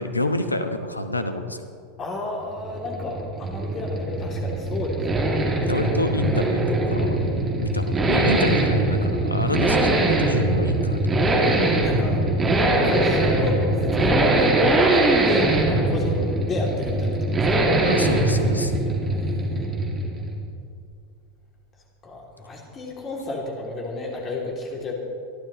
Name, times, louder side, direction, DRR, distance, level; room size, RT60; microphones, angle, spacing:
voice 1, 0.0-1.7 5.7-7.1 7.6-11.0 17.9-18.7, left 1 dB, 85° left, 8 dB, 1.0 m, -28 dB
voice 2, 2.0-5.2 11.8-12.2 12.5-17.6 19.0-19.6 22.0-24.9, left 2 dB, 30° left, -1 dB, 2.8 m, -31 dB
sound 1, 2.4-20.5, right 2 dB, 20° right, 2.4 m, -22 dB
26.0 x 12.0 x 3.1 m, 2.4 s
figure-of-eight pair, 85°, 0 cm